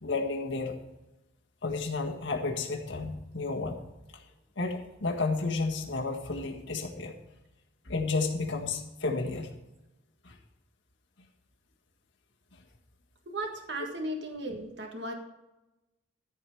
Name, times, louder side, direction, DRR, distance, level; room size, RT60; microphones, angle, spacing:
voice 1, 0.0-0.8 1.6-3.8 4.6-7.1 7.9-9.5 10.2-10.4, left 3 dB, 75° left, 1 dB, 1.7 m, -31 dB
voice 2, 13.3-15.1, right 1 dB, 65° right, 2 dB, 1.7 m, -36 dB
14.0 x 4.9 x 7.1 m, 1.0 s
head